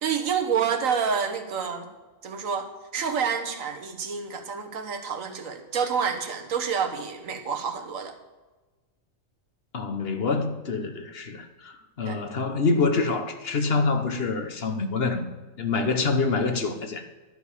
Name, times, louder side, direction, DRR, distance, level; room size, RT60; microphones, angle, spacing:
voice 1, 0.0-1.9 2.2-8.2 12.0-12.2, right 6 dB, 80° right, 6 dB, 1.6 m, -28 dB
voice 2, 9.7-15.2 15.6-17.1, left 4 dB, 50° left, 7 dB, 1.1 m, -26 dB
11.5 x 5.2 x 8.2 m, 1.2 s
omnidirectional pair, 1.4 m